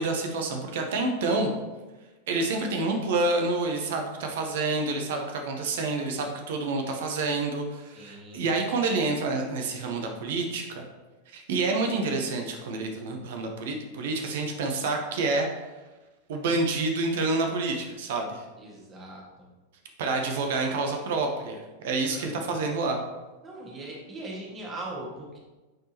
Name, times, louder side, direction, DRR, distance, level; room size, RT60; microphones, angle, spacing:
voice 1, 0.0-1.5 2.3-10.8 11.3-15.5 16.3-18.4 20.0-23.0, right 3 dB, 55° right, 3 dB, 0.9 m, -28 dB
voice 2, 7.9-8.6 18.6-19.5 22.0-22.6 23.4-25.4, right 2 dB, 25° right, -3 dB, 1.8 m, -40 dB
9.0 x 4.5 x 3.0 m, 1.2 s
figure-of-eight pair, 90°, 0 cm